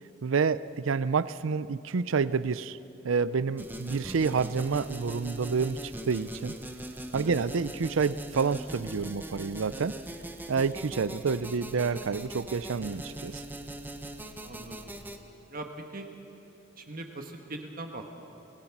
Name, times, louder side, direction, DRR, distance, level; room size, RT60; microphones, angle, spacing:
voice 1, 0.2-2.8 3.0-6.5 7.1-10.0 10.5-13.4, right 5 dB, 85° right, 16 dB, 0.5 m, -28 dB
sound 1, 3.6-15.2, right 1 dB, 10° right, 1.0 m, -41 dB
voice 2, 14.4-14.9 15.5-16.1 16.8-18.0, right 2 dB, 45° right, 4 dB, 1.4 m, -41 dB
25.5 x 17.5 x 6.0 m, 2.9 s
head